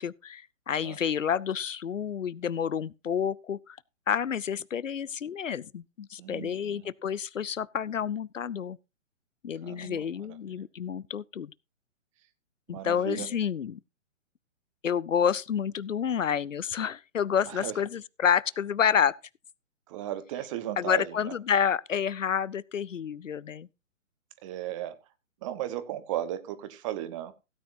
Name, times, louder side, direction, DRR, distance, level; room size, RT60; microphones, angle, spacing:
voice 1, 0.0-3.8 4.1-8.8 9.4-11.5 12.7-13.8 14.8-19.1 20.8-23.7, left 8 dB, 75° left, 0.6 m, -29 dB
voice 2, 6.2-6.9 9.6-10.4 12.7-13.3 17.5-17.7 19.9-21.1 24.4-24.9 25.4-27.3, right 12 dB, 25° right, 1.1 m, -35 dB
17.0 x 9.1 x 2.6 m
figure-of-eight pair, 125°, 39 cm